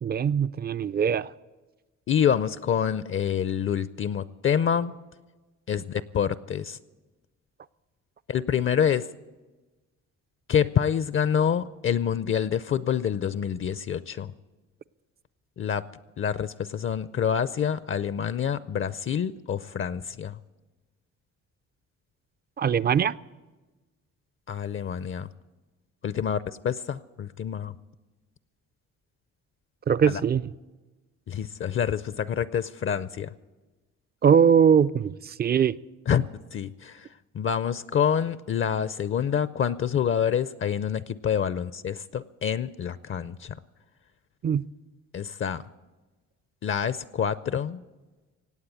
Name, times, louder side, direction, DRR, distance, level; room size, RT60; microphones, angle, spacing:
voice 1, 0.0-1.3 22.6-23.2 29.9-30.4 34.2-35.8 44.4-44.6, right 7 dB, 35° right, 17 dB, 0.4 m, -21 dB
voice 2, 2.1-4.9 5.7-6.8 8.3-9.1 10.5-14.3 15.6-15.8 16.2-20.4 24.5-25.3 26.0-27.7 30.0-30.2 31.3-33.3 36.1-37.1 37.3-43.6 45.1-45.6 46.6-47.8, left 8 dB, 45° left, 16 dB, 0.5 m, -27 dB
18.0 x 8.6 x 8.3 m, 1.2 s
cardioid pair, 90°, 30 cm